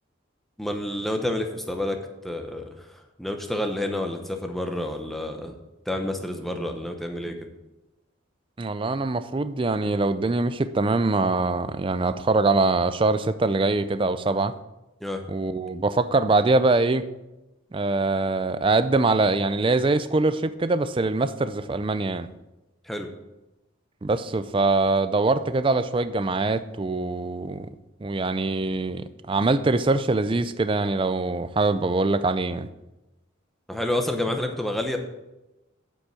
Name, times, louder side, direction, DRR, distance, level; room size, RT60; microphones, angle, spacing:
voice 1, 0.6-5.5 5.9-7.5 15.0-15.2 22.8-23.1 33.7-35.0, left 1 dB, ahead, 4 dB, 0.9 m, -29 dB
voice 2, 8.6-14.5 15.3-17.0 17.7-22.3 24.0-27.7 28.0-32.7, right 3 dB, 25° right, 12 dB, 0.4 m, -23 dB
8.3 x 5.4 x 7.6 m, 0.98 s
head